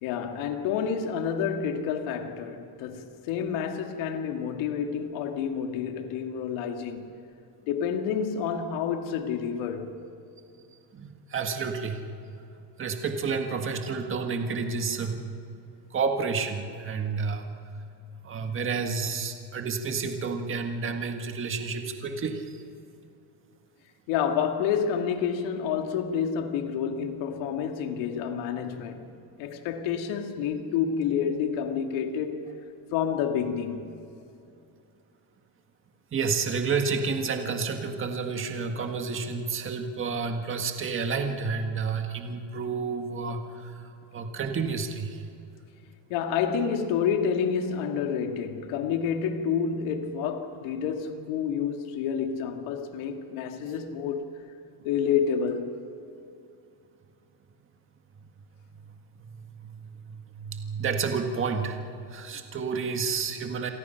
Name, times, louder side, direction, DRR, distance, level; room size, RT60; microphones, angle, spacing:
voice 1, 0.0-7.1 7.7-10.0 24.1-29.1 29.4-32.4 32.9-33.9 46.1-54.3 54.8-55.8, left 7 dB, 70° left, 2.3 m, -29 dB
voice 2, 10.9-12.0 12.8-15.3 15.9-17.5 18.2-22.4 36.1-45.2 59.2-61.8 62.1-63.7, right 5 dB, 25° right, 1.7 m, -30 dB
29.0 x 23.0 x 5.9 m
cardioid pair, 160°, 49 cm